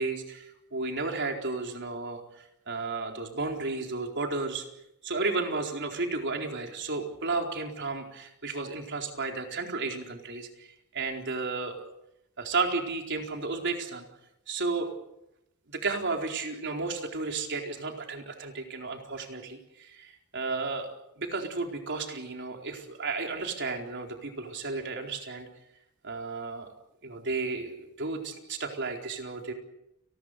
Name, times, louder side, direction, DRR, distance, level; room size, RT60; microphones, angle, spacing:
voice 1, 0.0-4.6 5.0-10.7 10.9-11.8 12.4-14.1 14.5-14.9 15.7-20.9 21.2-25.5 26.0-26.7 27.0-29.5, right 3 dB, 55° right, 3 dB, 4.2 m, -33 dB
30.0 x 20.5 x 6.7 m, 0.84 s
head